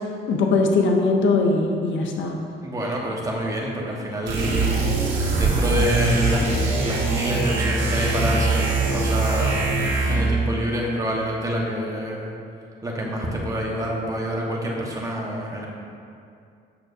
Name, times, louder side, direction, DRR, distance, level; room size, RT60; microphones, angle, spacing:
voice 1, 0.3-2.5, left 3 dB, 70° left, 2 dB, 0.8 m, -20 dB
voice 2, 2.6-9.7 10.1-12.3 12.8-15.7, equal, 15° right, -3 dB, 1.3 m, -27 dB
sound 1, 4.3-10.4, right 3 dB, 70° right, 1.7 m, -22 dB
8.7 x 6.1 x 2.7 m, 2.4 s
cardioid pair, 90°, 20 cm